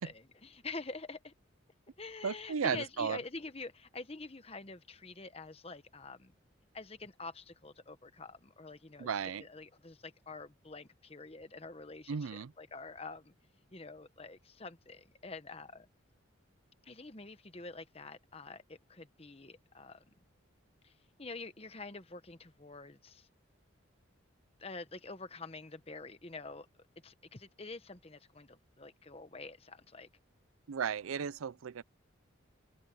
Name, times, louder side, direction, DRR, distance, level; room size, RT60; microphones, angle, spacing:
voice 1, 0.4-1.3 2.0-6.3 6.7-9.1 9.4-13.3 13.7-15.9 16.8-20.1 20.8-20.9 21.2-23.3 24.6-26.7 27.0-30.1, left 3 dB, 30° left, 1.1 m, -47 dB
voice 2, 2.2-3.2 9.0-9.4 12.1-12.5 30.7-31.8, right 7 dB, 90° right, 0.5 m, -35 dB
open air
head